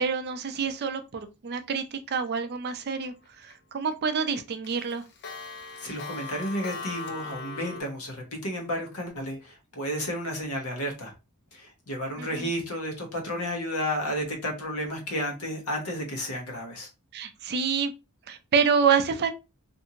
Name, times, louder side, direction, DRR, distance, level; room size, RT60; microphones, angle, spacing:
voice 1, 0.0-5.0 12.2-12.5 17.1-17.9 18.3-19.3, right 6 dB, 45° right, 0.4 m, -27 dB
Clock, 3.0-3.5 3.9-4.0 4.3-7.8, left 3 dB, 50° left, 0.5 m, -39 dB
voice 2, 5.8-11.1 11.5-16.9, equal, 70° left, 1.0 m, -32 dB
2.6 x 2.5 x 2.7 m
head